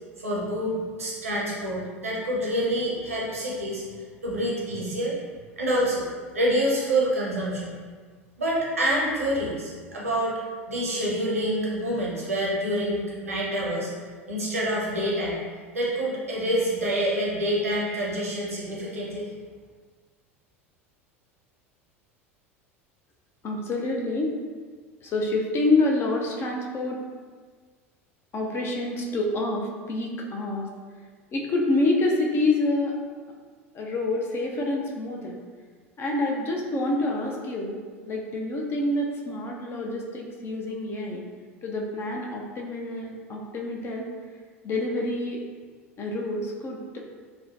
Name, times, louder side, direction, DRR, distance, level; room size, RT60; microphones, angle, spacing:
voice 1, 0.2-3.8 4.2-5.2 5.6-6.1 6.3-7.7 8.4-10.4 10.7-13.9 14.3-15.4 15.7-19.3, right 1 dB, 85° right, -5 dB, 0.7 m, -27 dB
voice 2, 23.4-24.4 25.0-27.0 28.3-30.7 31.3-33.0 33.7-35.4 36.0-37.8 38.1-41.2 41.6-44.1 44.6-45.4 46.0-47.0, left 2 dB, 35° left, 0 dB, 0.5 m, -27 dB
3.0 x 2.0 x 2.5 m, 1.5 s
figure-of-eight pair, 75°, 7 cm